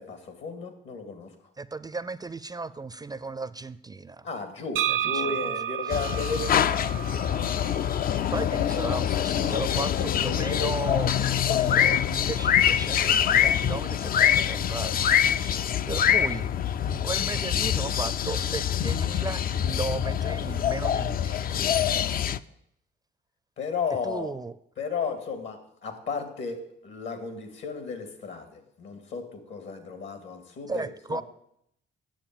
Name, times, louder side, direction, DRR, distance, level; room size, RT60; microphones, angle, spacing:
voice 1, 0.0-1.3 4.2-6.8 15.5-15.7 23.6-24.3 24.8-30.8 31.1-31.2, left 5 dB, 70° left, 8 dB, 2.3 m, -34 dB
voice 2, 1.6-4.3 4.9-5.5 5.8-6.0 8.3-16.5 16.8-21.6 24.0-24.5 30.7-31.2, right 3 dB, 20° right, 14 dB, 0.4 m, -36 dB
sound 1, 4.8-8.5, right 10 dB, 85° right, 0.5 m, -32 dB
sound 2, 5.9-22.4, left 9 dB, 50° left, 0.4 m, -25 dB
8.9 x 7.2 x 9.0 m, 0.74 s
cardioid pair, 90°, 20 cm